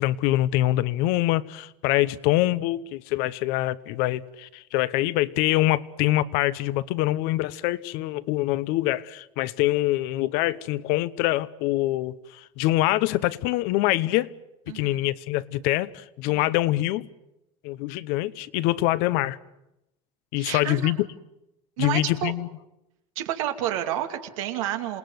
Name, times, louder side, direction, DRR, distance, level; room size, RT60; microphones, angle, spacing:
voice 1, 0.0-14.3 14.7-17.1 17.6-19.4 20.3-21.0 21.8-22.5, left 16 dB, 70° left, 1.0 m, -24 dB
voice 2, 14.7-15.0 16.3-16.4 20.4-20.9 21.8-22.3 23.2-25.0, right 12 dB, 90° right, 2.6 m, -30 dB
28.0 x 18.5 x 8.0 m
supercardioid pair, 130°, 16 cm